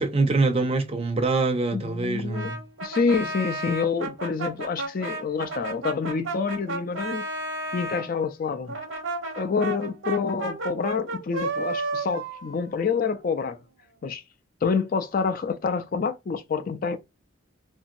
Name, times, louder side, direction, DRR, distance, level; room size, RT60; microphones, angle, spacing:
voice 1, 0.0-2.6, right 3 dB, 30° right, 0.5 m, -24 dB
voice 2, 1.7-2.5 2.8-7.2 7.7-8.8 9.4-13.6 14.0-14.2 14.6-17.0, left 5 dB, 45° left, 0.4 m, -27 dB
Brass instrument, 2.3-8.1 8.7-13.4, right 2 dB, 85° right, 1.0 m, -33 dB
3.0 x 2.6 x 2.6 m
head